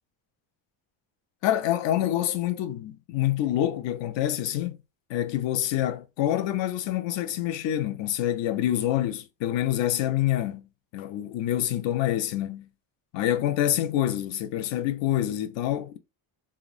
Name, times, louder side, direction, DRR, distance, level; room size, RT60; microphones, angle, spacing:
voice 1, 1.4-4.8 5.1-10.7 10.9-12.7 13.1-16.0, left 12 dB, 65° left, 0.5 m, -26 dB
2.9 x 2.0 x 2.4 m
cardioid pair, 140°, 49 cm